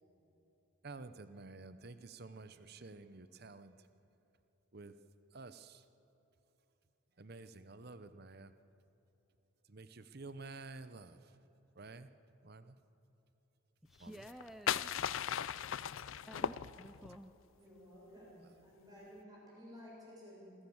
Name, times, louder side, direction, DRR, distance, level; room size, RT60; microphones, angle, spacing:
voice 1, 0.8-3.9 4.7-4.9 5.3-5.8 7.2-8.5 9.7-11.4 11.8-12.1 12.4-12.8 14.0-14.2, right 3 dB, 50° right, 0.8 m, -51 dB
voice 2, 13.8-15.1 16.3-17.3, equal, ahead, 0.4 m, -52 dB
sound 1, 14.1-17.2, left 9 dB, 70° left, 0.4 m, -37 dB
voice 3, 17.5-20.6, equal, 20° right, 6.8 m, -54 dB
27.0 x 15.5 x 7.2 m
head